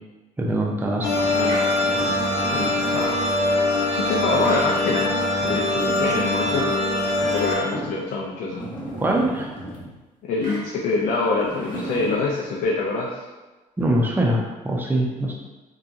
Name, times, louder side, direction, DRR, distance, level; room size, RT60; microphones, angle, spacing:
voice 1, 0.4-1.1 8.9-9.6 13.8-15.3, right 1 dB, 15° right, -1 dB, 0.5 m, -23 dB
sound 1, 1.0-7.5, left 1 dB, 85° left, 0.9 m, -22 dB
sound 2, 1.1-3.2 5.0-5.9 6.5-6.6 7.1-7.2 7.7-8.0 8.5-10.0 11.0-12.3, equal, 35° left, 0.9 m, -37 dB
sound 3, 1.5-1.7 4.4-4.7 7.4-7.7 10.4-10.7, right 2 dB, 75° right, 0.8 m, -35 dB
voice 2, 2.5-3.2 3.6-6.7 7.2-8.7 10.2-13.2, left 3 dB, 70° left, -3 dB, 0.4 m, -26 dB
2.8 x 2.3 x 2.4 m, 1.2 s
cardioid pair, 85°, 15 cm